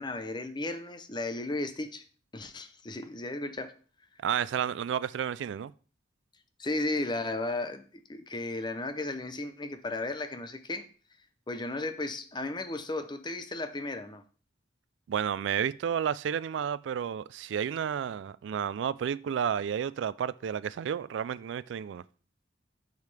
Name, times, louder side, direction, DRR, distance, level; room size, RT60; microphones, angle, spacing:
voice 1, 0.0-2.0 2.3-3.7 6.6-10.9 11.5-14.2, left 2 dB, 25° left, 0.6 m, -34 dB
voice 2, 4.2-5.7 15.1-22.0, right 8 dB, 70° right, 0.3 m, -31 dB
6.7 x 6.5 x 3.3 m
head